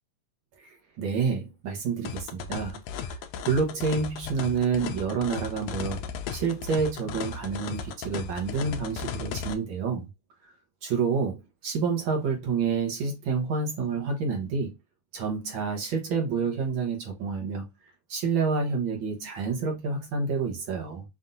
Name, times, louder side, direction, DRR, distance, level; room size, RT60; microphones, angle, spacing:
voice 1, 0.6-3.2 3.4-6.0 6.3-10.1 10.8-14.7 15.1-17.7 18.1-21.0, right 5 dB, 55° right, 1.5 m, -28 dB
sound 1, 2.1-9.6, left 6 dB, 75° left, 1.6 m, -36 dB
5.6 x 2.7 x 2.5 m
omnidirectional pair, 3.4 m